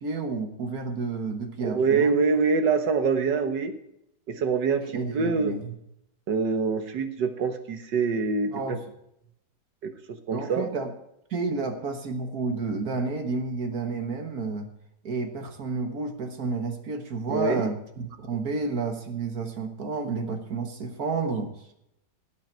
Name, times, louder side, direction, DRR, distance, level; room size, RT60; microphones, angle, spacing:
voice 1, 0.0-2.2 4.9-5.8 8.5-8.8 10.3-10.9 11.3-14.7 15.0-21.6, right 4 dB, 60° right, 6 dB, 1.8 m, -30 dB
voice 2, 1.6-3.7 4.3-5.5 6.3-8.8 9.8-10.7 17.3-17.7, right 5 dB, 80° right, 8 dB, 1.9 m, -25 dB
17.0 x 8.2 x 4.5 m, 0.79 s
omnidirectional pair, 1.9 m